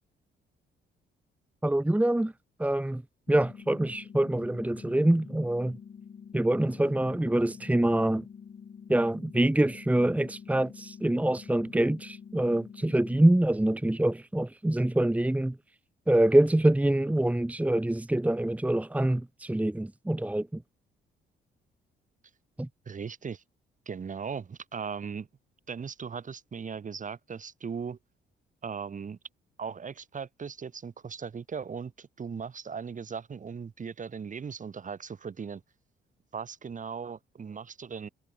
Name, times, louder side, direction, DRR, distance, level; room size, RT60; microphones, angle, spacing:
voice 1, 1.6-2.3 2.6-3.0 3.3-5.8 6.3-8.3 8.9-15.6 16.1-20.6 22.6-22.7, right 1 dB, 5° right, 1.3 m, -25 dB
sound 1, 3.3-13.3, left 6 dB, 45° left, 7.8 m, -47 dB
voice 2, 22.9-23.4 23.9-25.3 25.7-28.0 28.6-29.2 29.6-35.6 36.3-38.1, right 6 dB, 40° right, 2.7 m, -38 dB
cardioid pair, 90°, 20 cm